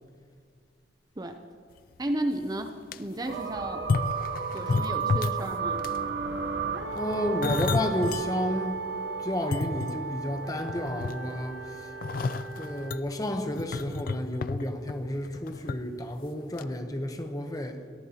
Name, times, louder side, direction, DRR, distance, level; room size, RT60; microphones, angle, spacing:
sound 1, 2.0-2.1 2.6-3.0 3.8-5.5 5.8-6.1 6.9-8.3 8.8-8.9 9.3-10.3 10.7-11.5 12.0-15.8 16.1-16.3 16.6-16.7, left 4 dB, 50° left, 0.4 m, -31 dB
voice 1, 2.0-2.7 3.0-3.9 4.5-5.9, right 1 dB, 20° right, 0.6 m, -33 dB
sound 2, 3.3-13.0, right 5 dB, 65° right, 1.0 m, -34 dB
voice 2, 6.9-8.8 9.2-11.9 12.6-17.8, equal, 20° left, 0.9 m, -31 dB
22.0 x 14.0 x 2.9 m
head